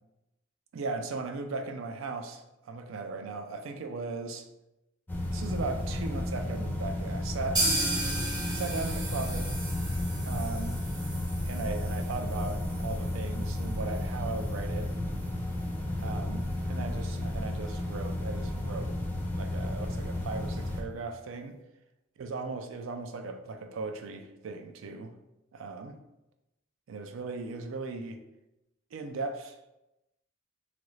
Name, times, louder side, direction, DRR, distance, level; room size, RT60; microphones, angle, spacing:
voice 1, 0.7-4.5 5.3-7.7 8.5-9.6 10.3-10.8 11.4-14.9 16.0-18.9 19.3-21.5 22.2-25.1 25.5-26.0 26.9-28.2 28.9-29.6, right 3 dB, 90° right, 6 dB, 0.4 m, -37 dB
sound 1, 5.1-20.8, left 1 dB, 10° left, 0.4 m, -33 dB
sound 2, 7.6-15.3 15.6-15.7 16.0-16.1 16.5-16.6, right 2 dB, 20° right, 0.9 m, -36 dB
3.0 x 2.5 x 3.1 m, 0.93 s
head